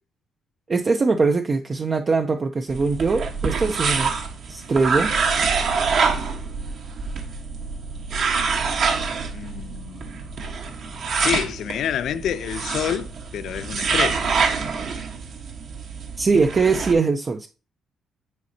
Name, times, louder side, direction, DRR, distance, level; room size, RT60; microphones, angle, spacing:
voice 1, 0.7-4.1 4.5-5.1 16.2-17.5, right 4 dB, 35° right, 0.6 m, -21 dB
sound 1, 2.7-16.9, right 5 dB, 65° right, 1.4 m, -26 dB
voice 2, 9.3-10.3 11.2-14.3, left 9 dB, 70° left, 0.3 m, -28 dB
9.4 x 4.1 x 2.8 m
cardioid pair, 90°, 0 cm